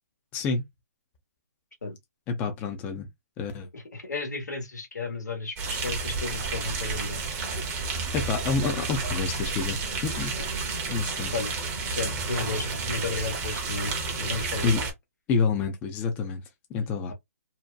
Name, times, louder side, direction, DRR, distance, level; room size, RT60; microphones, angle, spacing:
voice 1, 0.3-0.6 2.3-3.1 3.4-3.7 8.1-9.8 10.0-10.4 10.9-11.3 14.6-14.8 15.3-16.4 16.7-17.1, left 5 dB, 20° left, 0.5 m, -28 dB
voice 2, 3.7-7.2 10.4-10.5 11.3-11.5 11.8-14.8 17.1-17.2, left 3 dB, 90° left, 1.2 m, -33 dB
sound 1, 5.6-14.9, right 4 dB, 20° right, 0.7 m, -31 dB
2.7 x 2.1 x 2.2 m
hypercardioid pair, 145°, 9 cm